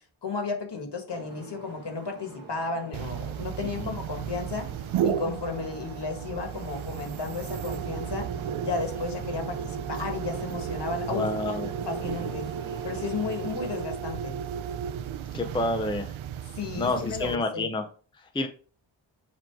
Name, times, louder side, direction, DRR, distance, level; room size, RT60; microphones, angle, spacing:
voice 1, 0.2-4.7 5.0-8.3 8.6-11.6 11.8-12.5 12.8-14.3 16.6-17.7, left 4 dB, 60° left, 4 dB, 1.7 m, -33 dB
sound 1, 1.1-13.9, right 3 dB, 45° right, 1.6 m, -44 dB
sound 2, 2.9-17.4, right 8 dB, 90° right, 0.6 m, -34 dB
voice 2, 11.1-11.7 15.3-16.1 16.8-17.8 18.2-18.5, left 2 dB, 10° left, 5 dB, 0.5 m, -29 dB
7.7 x 3.0 x 4.6 m, 0.41 s
wide cardioid pair, 140°, 47 cm